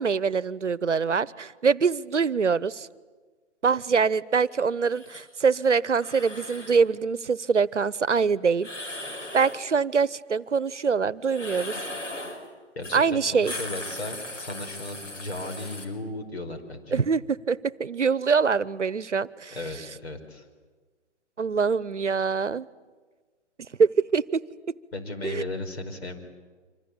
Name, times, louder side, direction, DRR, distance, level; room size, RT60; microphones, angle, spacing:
voice 1, 0.0-2.9 3.6-8.7 9.3-11.8 12.9-13.5 16.9-19.5 21.4-22.7 23.8-24.7 25.2-25.4, right 5 dB, 75° right, 20 dB, 1.0 m, -24 dB
sound 1, 4.9-5.3 5.9-6.8 8.6-9.6 11.3-12.4 12.8-13.0 13.3-15.8, left 1 dB, 80° left, 6.0 m, -38 dB
voice 2, 12.8-17.0 19.5-20.4 24.9-26.2, left 2 dB, 60° left, 6 dB, 5.1 m, -36 dB
26.0 x 26.0 x 8.7 m, 1.4 s
figure-of-eight pair, 135°, 36 cm